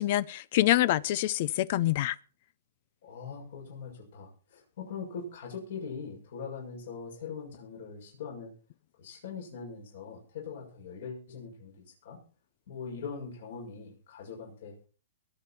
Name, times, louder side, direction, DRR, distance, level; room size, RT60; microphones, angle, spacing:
voice 1, 0.0-2.1, left 14 dB, 45° left, 0.6 m, -26 dB
voice 2, 3.0-8.5 9.0-12.2 12.7-14.9, left 5 dB, 65° left, 6.8 m, -42 dB
22.5 x 7.8 x 4.4 m
hypercardioid pair, 155°, 0 cm